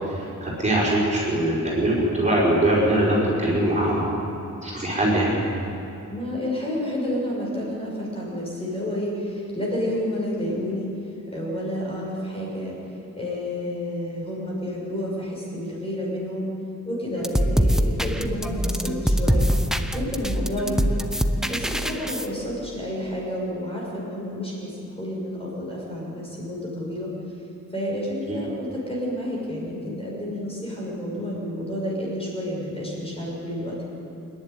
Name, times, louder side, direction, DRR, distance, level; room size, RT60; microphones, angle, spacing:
voice 1, 0.1-4.2 4.6-5.4 28.3-28.4, right 1 dB, 25° right, -6 dB, 5.2 m, -22 dB
voice 2, 6.1-10.9 11.3-12.7 13.2-16.5 16.8-19.5 19.9-21.0 21.4-27.4 27.7-33.9, left 1 dB, 20° left, -4 dB, 6.6 m, -30 dB
sound 1, 17.2-22.3, equal, ahead, 0.8 m, -23 dB
26.5 x 11.0 x 9.7 m, 2.8 s
wide cardioid pair, 165°, 31 cm